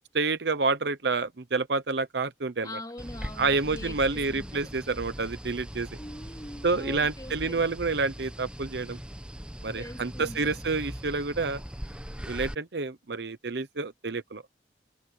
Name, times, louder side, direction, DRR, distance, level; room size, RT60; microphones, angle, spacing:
voice 1, 0.1-2.7 3.4-5.9 6.6-9.0 9.6-11.6 12.3-14.5, right 3 dB, 65° right, 0.8 m, -28 dB
voice 2, 2.6-4.7 6.0-7.6 9.7-10.6, left 1 dB, 20° left, 3.4 m, -43 dB
sound 1, 3.0-12.5, equal, 5° right, 0.9 m, -40 dB
head